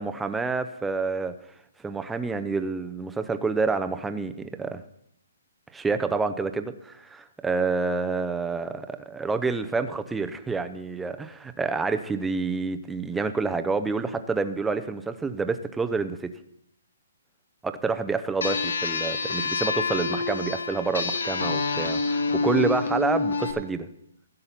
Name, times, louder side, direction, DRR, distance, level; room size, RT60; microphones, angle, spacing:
voice 1, 0.0-1.3 1.8-4.8 5.7-16.3 17.6-23.9, right 4 dB, 5° right, 9 dB, 0.6 m, -28 dB
sound 1, 18.4-23.5, left 3 dB, 80° left, 1.5 m, -27 dB
15.5 x 6.7 x 5.8 m, 0.75 s
hypercardioid pair, 155°, 0 cm